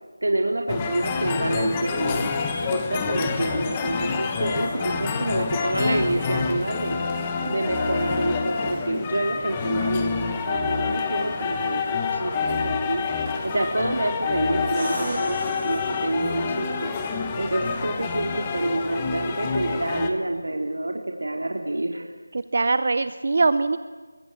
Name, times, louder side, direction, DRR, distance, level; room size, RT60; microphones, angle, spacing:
voice 1, 0.2-2.3 2.7-7.0 7.5-11.8 12.2-13.0 13.4-16.9 17.4-22.1, right 1 dB, 90° right, 1 dB, 3.5 m, -27 dB
sound 1, 0.7-20.1, left 5 dB, 10° left, 1.1 m, -27 dB
sound 2, 14.5-16.5 20.2-20.3, right 1 dB, 5° right, 7.7 m, -36 dB
voice 2, 22.3-23.8, right 3 dB, 35° right, 13 dB, 0.7 m, -22 dB
28.5 x 23.5 x 7.4 m, 1.4 s
figure-of-eight pair, 180°, 0 cm